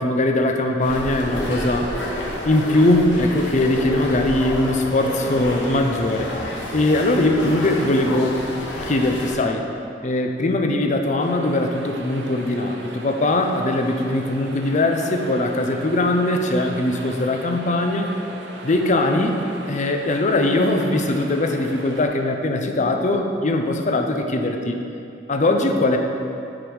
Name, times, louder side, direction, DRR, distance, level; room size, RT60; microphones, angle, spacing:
voice 1, 0.0-1.9 2.4-6.3 6.7-8.4 8.8-9.7 10.0-18.1 18.6-19.3 19.7-24.8 25.3-26.0, left 2 dB, 40° left, 4 dB, 0.6 m, -21 dB
sound 1, 0.8-9.3, left 1 dB, 90° left, 1.3 m, -30 dB
sound 2, 11.2-22.1, right 1 dB, 70° right, 0.8 m, -38 dB
7.3 x 5.1 x 4.7 m, 2.6 s
head